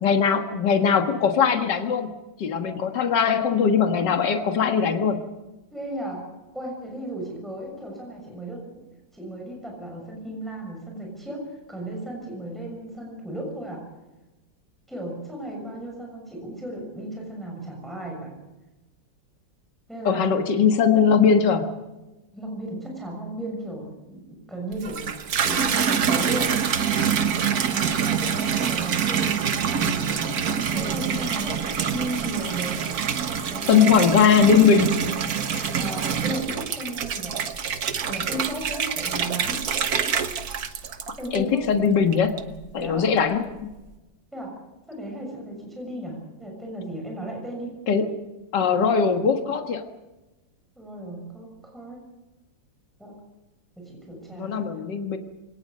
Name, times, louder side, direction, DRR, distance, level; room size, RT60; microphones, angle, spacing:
voice 1, 0.0-2.1 2.4-5.2 20.1-21.7 33.7-35.1 41.3-42.4 42.7-43.4 47.9-48.1 48.5-49.8 54.3-55.2, left 6 dB, 65° left, 6 dB, 2.2 m, -20 dB
voice 2, 5.7-6.3 6.5-8.6 9.1-13.8 14.9-18.3 19.9-20.3 22.3-25.1 25.4-26.6 27.4-32.8 33.5-34.2 35.8-37.4 38.0-39.6 41.2-41.6 42.7-43.1 44.3-44.5 44.9-47.7 50.8-52.0 53.0-53.2 53.8-54.8, right 1 dB, ahead, 0 dB, 6.3 m, -35 dB
Water tap faucet / Bathtub (filling or washing), 24.7-41.7 42.1-42.7, right 7 dB, 55° right, 1.6 m, -26 dB
23.5 x 19.5 x 6.6 m, 1.1 s
omnidirectional pair, 2.1 m